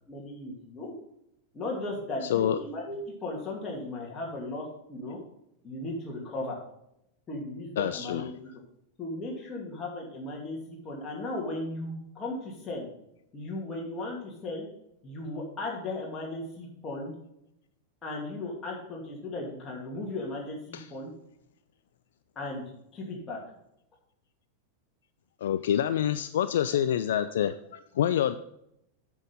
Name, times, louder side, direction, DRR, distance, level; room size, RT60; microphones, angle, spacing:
voice 1, 0.1-0.9 1.5-5.2 5.6-6.6 7.3-8.5 9.0-12.9 13.3-14.6 15.0-17.1 18.0-21.1 22.4-22.6 22.9-23.4, left 2 dB, 20° left, -3 dB, 2.4 m, -36 dB
voice 2, 7.8-8.2 20.7-20.9 25.4-28.3, left 10 dB, 60° left, 12 dB, 0.3 m, -27 dB
8.9 x 6.3 x 5.2 m, 0.79 s
figure-of-eight pair, 90°, 0 cm